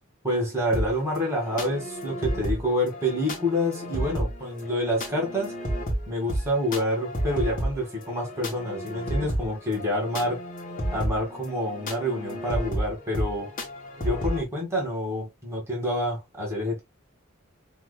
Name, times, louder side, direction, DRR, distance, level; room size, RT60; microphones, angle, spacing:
voice 1, 0.2-5.5 6.1-10.4 10.9-13.5 14.0-16.8, equal, 15° right, 1.8 m, -27 dB
sound 1, 0.7-14.4, equal, 40° left, 1.3 m, -32 dB
4.7 x 2.8 x 2.2 m
head